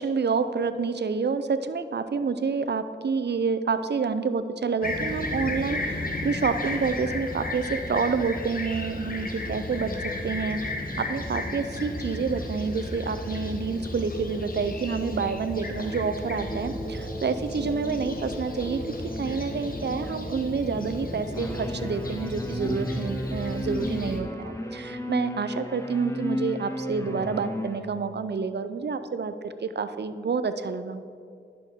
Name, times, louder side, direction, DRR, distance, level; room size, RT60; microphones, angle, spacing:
voice 1, 0.0-18.8 19.2-31.0, right 5 dB, 65° right, 11 dB, 0.5 m, -28 dB
Fixed-wing aircraft airplane, 4.8-24.2, left 1 dB, 50° left, 1.1 m, -34 dB
sound 1, 21.3-27.8, left 1 dB, 15° left, 0.9 m, -33 dB
11.0 x 6.0 x 3.6 m, 2.5 s
cardioid pair, 45°, 19 cm